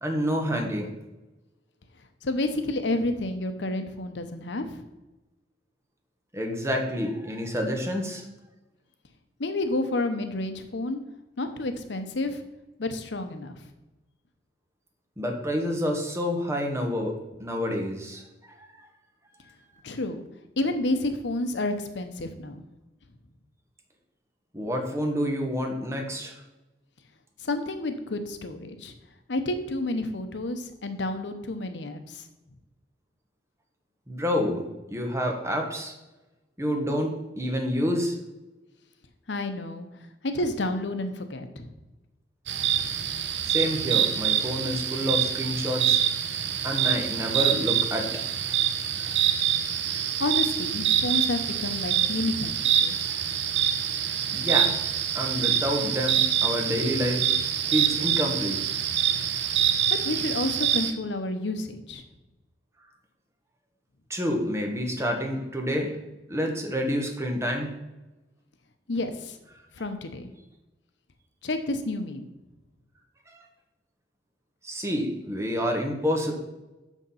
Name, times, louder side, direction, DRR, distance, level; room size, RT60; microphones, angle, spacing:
voice 1, 0.0-0.9 6.3-8.2 15.2-17.1 17.4-18.2 18.6-18.9 24.5-26.3 34.1-34.6 34.9-35.9 36.6-38.1 43.4-46.0 46.6-48.0 49.0-49.2 53.1-53.2 54.3-54.7 55.1-57.3 57.7-58.6 64.1-65.9 66.3-67.7 73.3-73.4 74.6-76.3, equal, 15° right, 2 dB, 1.3 m, -28 dB
voice 2, 2.2-4.8 9.4-11.0 11.4-12.4 12.8-13.6 19.8-20.2 20.6-22.6 27.4-28.9 29.3-32.2 39.3-39.9 40.2-41.7 50.2-53.1 60.0-62.0 68.9-69.3 69.8-70.3 71.4-72.3, left 2 dB, 80° left, 8 dB, 0.8 m, -30 dB
sound 1, 42.5-60.9, right 9 dB, 80° right, 0.7 m, -25 dB
6.4 x 6.3 x 5.6 m, 1.0 s
head